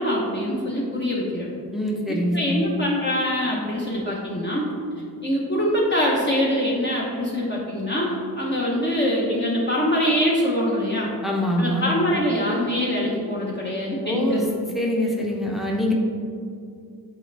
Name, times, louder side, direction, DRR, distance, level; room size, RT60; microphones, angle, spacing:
voice 1, 0.0-1.5 2.3-4.7 5.2-11.1 11.6-14.5, equal, 30° left, -5 dB, 0.9 m, -24 dB
voice 2, 1.7-2.7 11.2-11.9 14.0-14.5 14.7-15.9, equal, ahead, -1 dB, 0.7 m, -24 dB
9.0 x 4.2 x 3.3 m, 2.4 s
wide cardioid pair, 145°, 37 cm